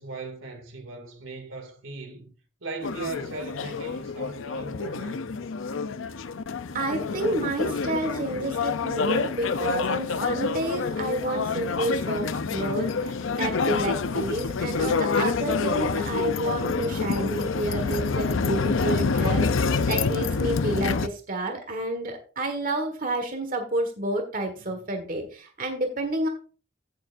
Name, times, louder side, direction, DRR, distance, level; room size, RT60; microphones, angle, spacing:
voice 1, 0.0-2.3 2.6-5.4 24.7-24.8, right 3 dB, 90° right, 2.4 m, -38 dB
sound 1, 2.8-21.1, left 4 dB, 80° left, 0.6 m, -27 dB
voice 2, 6.7-26.3, right 1 dB, 45° right, 1.6 m, -30 dB
15.5 x 6.7 x 2.6 m
head